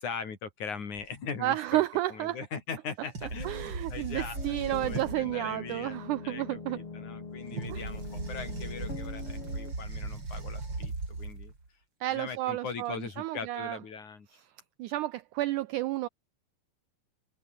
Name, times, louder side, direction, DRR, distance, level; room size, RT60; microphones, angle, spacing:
voice 1, 0.0-1.8 2.1-6.0 6.2-11.6 12.1-14.3, left 5 dB, 55° left, 5.3 m, -40 dB
sound 1, 0.9-1.0 3.1-5.3 7.5-11.7, right 3 dB, 30° right, 5.5 m, -38 dB
voice 2, 1.4-2.4 3.4-6.8 7.7-7.8 12.0-13.8 14.8-16.1, right 15 dB, 85° right, 1.7 m, -31 dB
sound 2, 4.4-9.7, left 4 dB, 35° left, 4.6 m, -42 dB
omnidirectional pair, 4.3 m